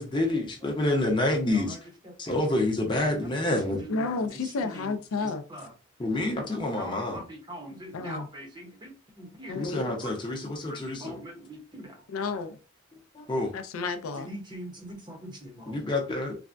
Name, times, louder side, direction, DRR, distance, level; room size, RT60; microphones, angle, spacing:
voice 1, 0.0-1.8 2.2-3.8 6.0-7.2 9.5-11.2 13.1-13.5 15.7-16.4, left 1 dB, 25° left, 0.7 m, -28 dB
voice 2, 1.5-2.5 2.9-4.9 5.2-5.7 6.8-10.2 10.7-12.0 14.1-15.9, right 1 dB, 20° right, 0.7 m, -43 dB
voice 3, 3.9-5.4 7.9-8.3 9.5-9.8 12.1-12.6 13.5-14.3, left 4 dB, 85° left, 0.4 m, -31 dB
3.3 x 2.1 x 2.5 m
head